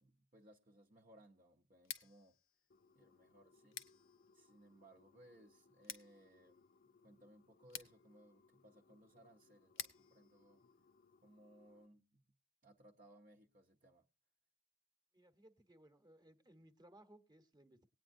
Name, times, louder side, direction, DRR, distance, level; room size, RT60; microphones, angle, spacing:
voice 1, 0.0-2.4 2.9-3.8 4.3-6.7 7.0-10.6 11.2-12.3 12.6-14.1, right 1 dB, 40° right, 0.7 m, -64 dB
Scissors, 1.7-11.6, left 9 dB, 80° left, 0.9 m, -55 dB
sound 1, 2.7-11.9, left 4 dB, 50° left, 0.5 m, -71 dB
voice 2, 15.1-17.9, right 1 dB, 20° right, 1.0 m, -64 dB
19.5 x 9.1 x 2.6 m
head